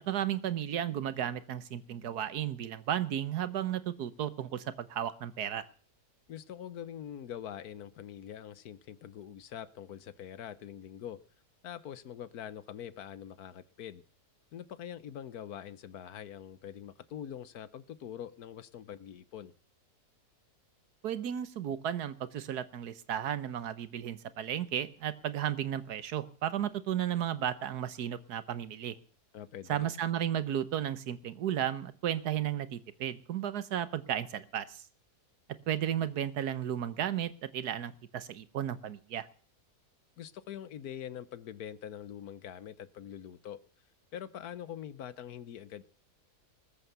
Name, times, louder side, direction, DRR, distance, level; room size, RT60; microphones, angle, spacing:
voice 1, 0.1-5.6 21.0-29.0 29.7-34.8 35.7-39.3, right 10 dB, 80° right, 1.5 m, -34 dB
voice 2, 6.3-11.2 11.6-14.0 14.5-19.5 29.3-29.9 40.2-43.6 44.1-45.8, left 9 dB, 75° left, 1.4 m, -44 dB
20.0 x 8.3 x 6.9 m
omnidirectional pair, 1.6 m